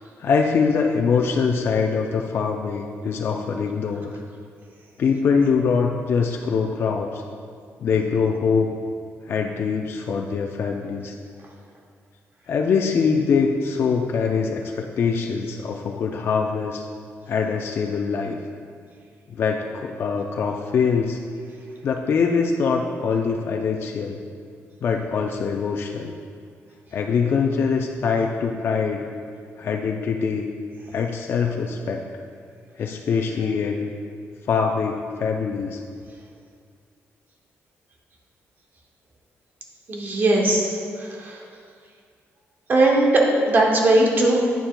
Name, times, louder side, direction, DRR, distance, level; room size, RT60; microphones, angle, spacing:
voice 1, 0.2-4.1 5.0-7.2 7.8-8.7 9.3-11.1 12.5-16.9 17.3-18.4 19.3-21.2 21.8-24.2 24.8-26.1 26.9-29.1 29.6-30.5 30.9-32.0 32.8-33.9 34.5-35.8, left 5 dB, 50° left, 1 dB, 0.4 m, -23 dB
voice 2, 39.9-40.7 41.2-41.4 42.7-44.4, right 2 dB, 40° right, -1 dB, 0.9 m, -18 dB
9.0 x 6.9 x 2.2 m, 2.2 s
cardioid pair, 145°, 5 cm